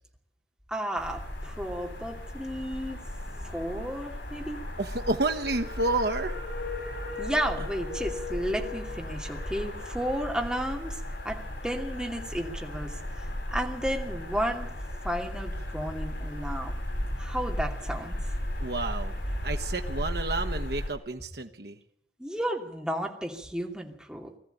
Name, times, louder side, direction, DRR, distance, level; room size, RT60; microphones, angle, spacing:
voice 1, 0.7-3.0 3.4-4.6 7.2-11.0 11.2-14.7 15.0-16.7 17.2-18.2 22.2-24.3, equal, 5° right, 1 dB, 2.7 m, -33 dB
sound 1, 1.0-20.9, left 1 dB, 75° left, 6.5 m, -35 dB
voice 2, 4.8-6.3 18.6-21.8, right 2 dB, 65° right, 5 dB, 1.1 m, -30 dB
21.0 x 14.0 x 9.2 m, 0.81 s
head